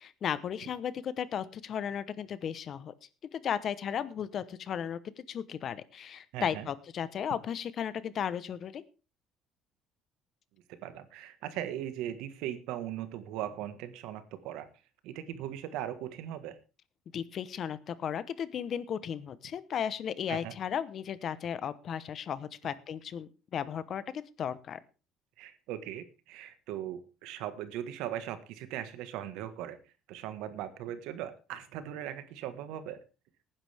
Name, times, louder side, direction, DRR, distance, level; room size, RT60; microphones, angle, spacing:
voice 1, 0.0-2.9 3.3-8.8 17.1-24.8, left 8 dB, 45° left, 16 dB, 1.0 m, -35 dB
voice 2, 6.3-6.7 10.7-14.7 15.0-16.6 20.3-20.5 25.4-29.8 30.1-33.0, right 11 dB, 85° right, 12 dB, 1.5 m, -39 dB
18.0 x 10.0 x 3.5 m, 0.32 s
cardioid pair, 135°, 0 cm